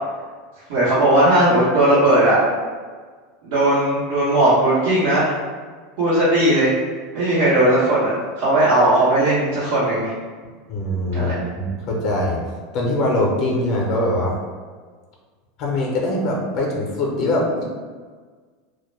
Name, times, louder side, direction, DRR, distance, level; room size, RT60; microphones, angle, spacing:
voice 1, 0.7-2.4 3.4-5.3 6.0-6.7 7.1-10.1 11.1-11.3, right 1 dB, 70° right, -10 dB, 0.9 m, -17 dB
voice 2, 10.7-12.4 12.7-14.3 15.6-17.6, left 1 dB, 50° left, -1 dB, 0.6 m, -22 dB
2.2 x 2.0 x 3.2 m, 1.5 s
supercardioid pair, 110°, 0 cm